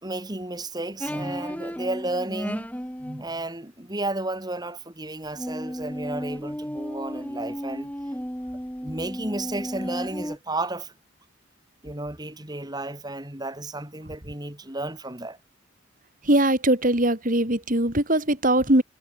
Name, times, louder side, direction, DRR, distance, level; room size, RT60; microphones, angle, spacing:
voice 1, 0.0-2.7 3.0-7.9 8.8-10.9 11.8-15.4, right 2 dB, 20° right, 3.3 m, -32 dB
sound 1, 1.0-3.3 5.3-10.4, equal, 5° left, 6.2 m, -34 dB
voice 2, 16.2-18.8, right 1 dB, 40° right, 3.6 m, -21 dB
head